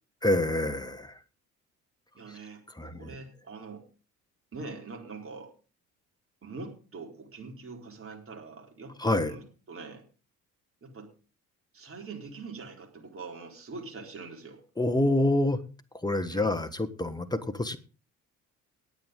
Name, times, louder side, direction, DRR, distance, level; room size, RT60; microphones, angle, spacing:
voice 1, 0.2-1.1 2.8-3.1 9.0-9.3 14.8-15.6 15.9-17.8, left 1 dB, 10° left, 14 dB, 1.4 m, -27 dB
voice 2, 2.1-3.8 4.5-5.5 6.4-8.9 9.3-10.0 10.8-11.1 11.7-14.6 16.3-16.5, right 4 dB, 30° right, 1 dB, 4.2 m, -43 dB
19.5 x 9.0 x 3.8 m, 0.35 s
figure-of-eight pair, 50°, 44 cm